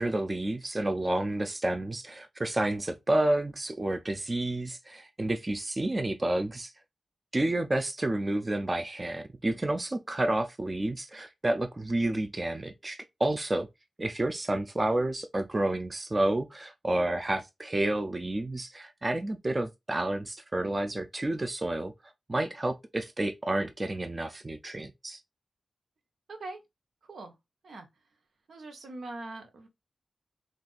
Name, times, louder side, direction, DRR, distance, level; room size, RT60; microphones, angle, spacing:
voice 1, 0.0-6.7 7.3-13.7 14.0-21.9 22.3-25.2, right 1 dB, 25° right, 0.4 m, -30 dB
voice 2, 28.5-29.7, right 2 dB, 85° right, 0.8 m, -42 dB
2.5 x 2.5 x 3.9 m
wide cardioid pair, 140°, 0 cm